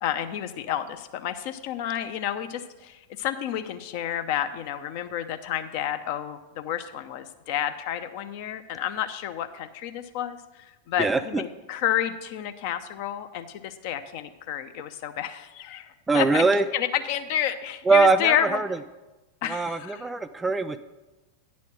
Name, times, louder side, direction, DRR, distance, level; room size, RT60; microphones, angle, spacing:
voice 1, 0.0-16.4 16.7-18.6 19.4-20.0, left 10 dB, 45° left, 9 dB, 0.6 m, -30 dB
voice 2, 11.0-11.4 16.1-16.6 17.9-18.7 19.5-20.8, right 3 dB, 10° right, 12 dB, 0.3 m, -22 dB
9.6 x 4.2 x 7.5 m, 1.1 s
figure-of-eight pair, 90°, 0 cm